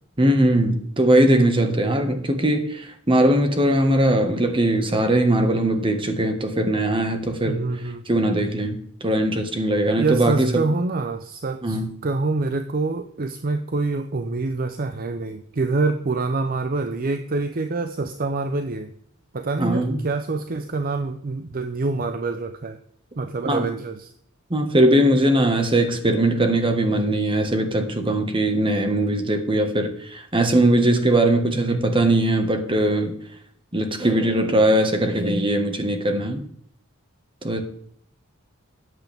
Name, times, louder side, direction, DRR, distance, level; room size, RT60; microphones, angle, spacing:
voice 1, 0.2-7.6 8.1-10.6 11.6-11.9 19.6-20.0 23.5-23.7 24.5-33.1 33.7-36.4 37.4-37.6, right 1 dB, 25° right, 6 dB, 1.5 m, -20 dB
voice 2, 7.4-8.0 10.0-18.9 19.3-22.8 23.2-24.1 31.5-31.9, right 3 dB, 45° right, 8 dB, 0.6 m, -26 dB
13.5 x 9.4 x 3.5 m, 0.66 s
head